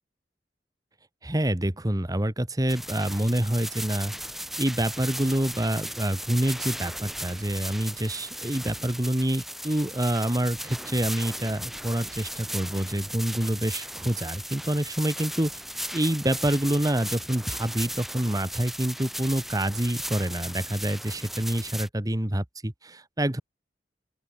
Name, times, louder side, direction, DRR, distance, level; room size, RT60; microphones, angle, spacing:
voice 1, 1.2-4.1 4.6-15.5 15.9-23.4, right 1 dB, 20° right, 1.5 m, -27 dB
sound 1, 2.7-21.9, equal, ahead, 4.0 m, -37 dB
open air
head